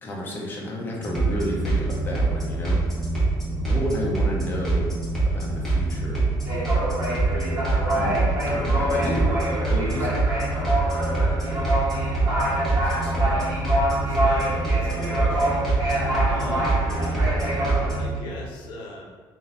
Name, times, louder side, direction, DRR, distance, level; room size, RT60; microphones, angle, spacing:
voice 1, 0.0-2.8 3.6-4.9 5.2-6.2 7.9-9.3 9.7-10.2, left 1 dB, 25° left, -3 dB, 0.7 m, -31 dB
sound 1, 1.0-18.2, right 3 dB, 5° left, 1.4 m, -25 dB
sound 2, 1.6-2.8 3.1-3.4 3.6-17.9, equal, 45° right, 1.2 m, -27 dB
voice 2, 11.5-11.8 12.7-13.4 13.9-15.6 16.3-16.8 18.0-19.0, left 1 dB, 80° left, -1 dB, 0.7 m, -40 dB
3.8 x 2.6 x 4.0 m, 1.5 s
cardioid pair, 140°, 9 cm